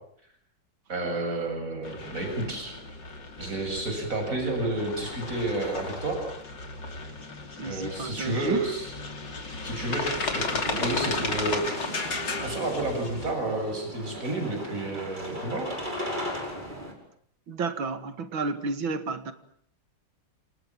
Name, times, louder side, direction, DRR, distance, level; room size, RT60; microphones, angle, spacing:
voice 1, 0.9-2.7 3.4-6.2 7.6-8.9 9.6-11.6 12.4-15.7, right 2 dB, 40° right, 4 dB, 8.1 m, -30 dB
sound 1, 1.8-13.3, left 3 dB, 55° left, 3.8 m, -34 dB
voice 2, 7.6-8.7 17.5-19.3, right 4 dB, 70° right, 10 dB, 2.8 m, -31 dB
sound 2, 10.6-16.9, equal, 20° right, 5.8 m, -37 dB
27.5 x 27.0 x 7.5 m, 0.66 s
omnidirectional pair, 2.3 m